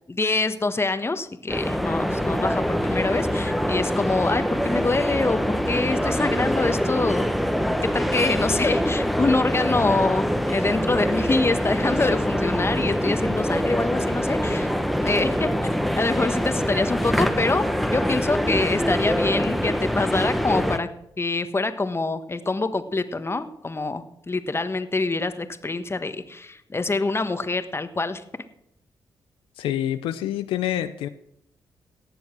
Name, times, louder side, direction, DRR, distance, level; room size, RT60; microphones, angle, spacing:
voice 1, 0.1-7.2 7.6-14.7 15.0-15.5 16.0-20.9 21.2-28.2, left 3 dB, 30° left, 1.4 m, -25 dB
sound 1, 1.5-20.8, equal, ahead, 1.2 m, -24 dB
voice 2, 29.6-31.1, left 12 dB, 85° left, 0.6 m, -27 dB
17.5 x 7.2 x 6.2 m
supercardioid pair, 50°, 9 cm